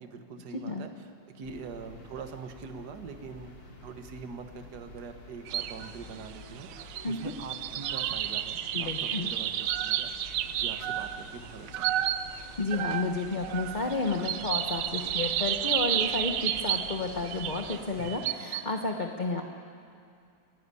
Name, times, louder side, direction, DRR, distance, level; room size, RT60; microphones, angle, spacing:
voice 1, 0.0-3.6 3.8-12.1 18.0-18.2, right 5 dB, 50° right, 6 dB, 1.7 m, -44 dB
voice 2, 0.5-0.9 7.0-7.2 8.7-9.3 12.3-19.4, left 3 dB, 35° left, 2 dB, 0.7 m, -31 dB
sound 1, 1.4-18.1, left 2 dB, 55° left, 3.2 m, -50 dB
sound 2, 5.5-5.9 6.2-18.6, right 11 dB, 70° right, 1.1 m, -32 dB
28.0 x 11.0 x 9.7 m, 2.4 s
omnidirectional pair, 2.4 m